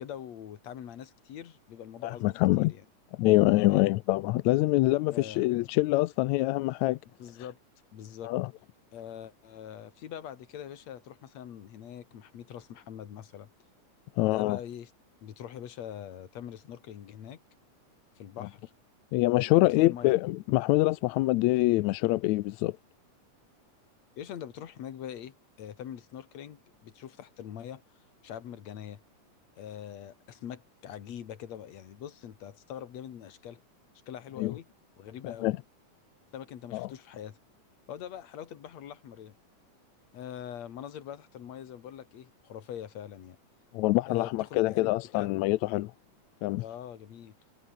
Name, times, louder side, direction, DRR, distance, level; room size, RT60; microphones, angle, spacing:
voice 1, 0.0-2.2 2.6-2.8 3.7-3.9 5.1-5.4 7.2-7.6 7.9-8.3 8.9-13.5 14.2-14.9 15.2-17.4 18.2-18.7 19.6-20.1 24.2-27.8 28.2-29.0 29.6-33.6 34.1-34.7 35.0-35.5 36.3-37.4 37.9-39.3 40.1-43.4 44.0-45.3 46.6-47.3, left 9 dB, 60° left, 2.8 m, -43 dB
voice 2, 2.0-2.7 3.2-7.0 8.2-8.5 14.2-14.6 18.4-18.5 19.1-22.8 34.4-34.5 35.2-35.5 36.7-36.9 43.7-45.9 46.4-46.6, left 19 dB, 80° left, 1.7 m, -25 dB
omnidirectional pair, 3.7 m